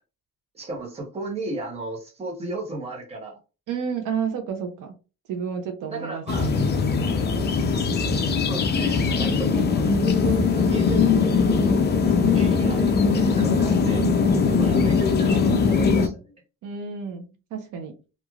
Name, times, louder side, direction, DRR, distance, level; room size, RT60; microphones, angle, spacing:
voice 1, 0.5-3.4 5.9-6.5 8.4-11.1 12.1-14.0 14.5-16.3, right 2 dB, 20° right, 0 dB, 0.8 m, -35 dB
voice 2, 3.7-4.9 5.3-6.9 11.4-11.9 13.4-15.1 16.6-18.0, right 6 dB, 70° right, 5 dB, 0.7 m, -32 dB
sound 1, 6.3-16.1, left 5 dB, 35° left, 0.4 m, -21 dB
3.1 x 2.4 x 2.3 m, 0.31 s
cardioid pair, 170°, 33 cm